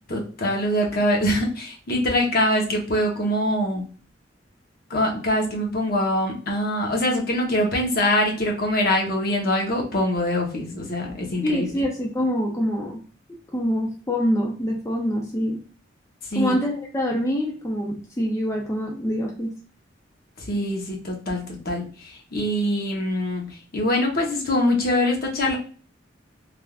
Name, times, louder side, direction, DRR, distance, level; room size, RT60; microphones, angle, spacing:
voice 1, 0.1-3.8 4.9-11.7 16.3-16.5 20.4-23.5 23.7-25.6, left 1 dB, 55° left, 0 dB, 0.9 m, -23 dB
voice 2, 11.4-13.0 13.5-15.6 16.3-19.5, equal, 15° left, -2 dB, 0.5 m, -25 dB
3.3 x 2.4 x 2.3 m, 0.40 s
head